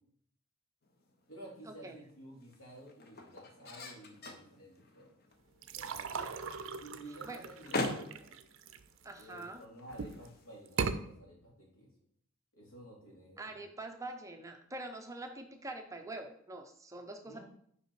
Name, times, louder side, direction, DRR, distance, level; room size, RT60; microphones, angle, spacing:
sound 1, 0.8-11.2, left 2 dB, 50° left, 0.8 m, -45 dB
voice 1, 1.3-5.2 5.7-6.2 6.8-8.3 9.2-11.9 12.5-13.6 17.2-17.4, right 1 dB, 85° left, -3 dB, 2.8 m, -52 dB
sound 2, 5.6-9.4 9.9-10.3 10.7-11.0, right 5 dB, 65° right, 0.5 m, -38 dB
voice 2, 6.1-6.5 7.3-7.4 9.0-9.7 13.4-17.4, right 2 dB, 15° right, 5 dB, 0.6 m, -45 dB
5.4 x 4.9 x 4.6 m, 0.66 s
head